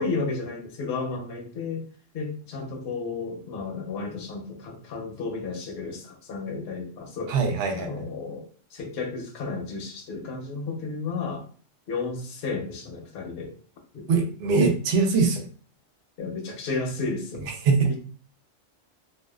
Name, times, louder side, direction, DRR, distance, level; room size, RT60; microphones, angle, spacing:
voice 1, 0.0-1.9 2.1-7.3 7.8-11.5 11.9-13.5 13.9-14.1 16.2-17.5 17.9-18.0, left 4 dB, 60° left, 2 dB, 0.8 m, -32 dB
voice 2, 7.3-8.1 14.1-15.4 17.6-18.0, right 4 dB, 65° right, 2 dB, 0.7 m, -22 dB
2.6 x 2.2 x 2.2 m, 0.42 s
omnidirectional pair, 1.3 m